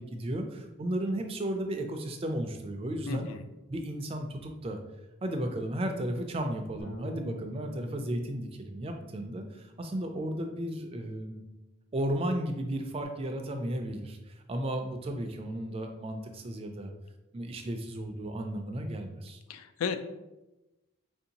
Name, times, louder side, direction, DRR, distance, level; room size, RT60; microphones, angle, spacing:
voice 1, 0.0-3.3 3.7-4.8 5.2-11.4 11.9-16.9 17.3-19.4, right 1 dB, 30° right, 5 dB, 0.3 m, -34 dB
voice 2, 3.1-3.4 19.5-20.0, left 5 dB, 90° left, 10 dB, 0.3 m, -33 dB
Bass guitar, 6.8-13.0, left 1 dB, 30° left, 0.6 m, -49 dB
4.2 x 2.6 x 2.8 m, 1.0 s
head